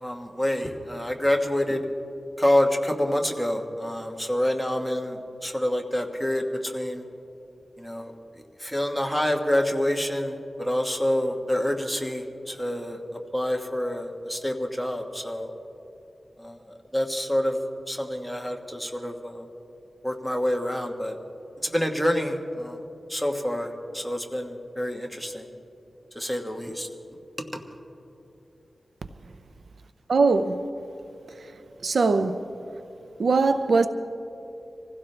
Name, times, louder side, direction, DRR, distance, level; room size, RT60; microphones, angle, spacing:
voice 1, 0.0-1.8 2.4-7.0 7.8-8.1 8.6-13.0 13.3-15.5 16.4-16.5 16.9-17.6 17.9-19.4 20.0-21.1 21.6-22.8 23.1-23.7 23.9-25.4 26.1-26.9, left 1 dB, ahead, 1.3 m, -27 dB
voice 2, 30.1-30.6 31.8-32.4 33.2-33.9, right 4 dB, 75° right, 0.6 m, -21 dB
25.5 x 16.0 x 3.3 m
wide cardioid pair, 115°, 0 cm